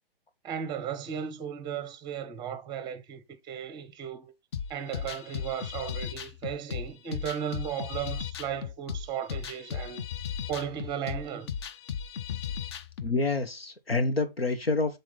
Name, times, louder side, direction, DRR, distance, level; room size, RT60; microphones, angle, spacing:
voice 1, 0.4-4.3 4.7-10.1 10.5-11.5, right 8 dB, 15° right, 0.8 m, -35 dB
sound 1, 4.5-13.1, left 8 dB, 30° left, 0.4 m, -36 dB
voice 2, 13.0-15.0, left 3 dB, 85° left, 1.3 m, -27 dB
7.3 x 3.8 x 3.9 m
figure-of-eight pair, 120°, 29 cm